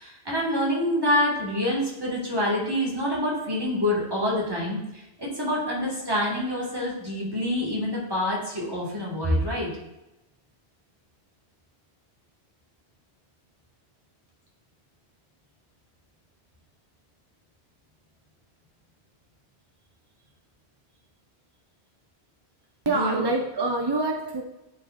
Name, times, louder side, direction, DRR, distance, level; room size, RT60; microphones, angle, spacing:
voice 1, 0.0-9.7 22.9-23.2, left 1 dB, 20° right, -4 dB, 1.7 m, -26 dB
voice 2, 22.9-24.4, right 2 dB, 40° right, 2 dB, 0.3 m, -25 dB
9.7 x 4.3 x 2.5 m, 0.94 s
omnidirectional pair, 1.1 m